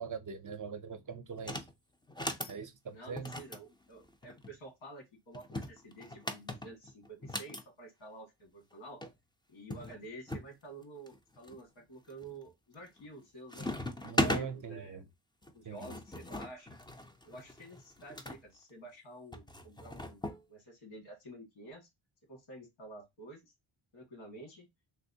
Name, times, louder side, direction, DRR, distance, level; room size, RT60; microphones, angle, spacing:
voice 1, 0.0-1.6 2.5-3.3 14.0-15.0 15.7-15.8, right 6 dB, 45° right, 0.5 m, -41 dB
sound 1, 1.4-1.7 2.1-2.6 3.2-4.5 5.3-7.6 8.7-8.8 9.0-9.1 9.7-10.5 11.1-11.6 12.1-12.5 12.8-13.2 13.5-14.5 15.4-18.4 19.3-20.4, left 1 dB, 10° left, 0.4 m, -38 dB
voice 2, 2.9-9.0 9.5-13.7 14.0-15.0 15.5-16.8 17.2-21.9 22.3-23.5 23.9-24.7, right 1 dB, 85° left, 1.8 m, -50 dB
3.3 x 2.8 x 2.6 m
wide cardioid pair, 135°, 46 cm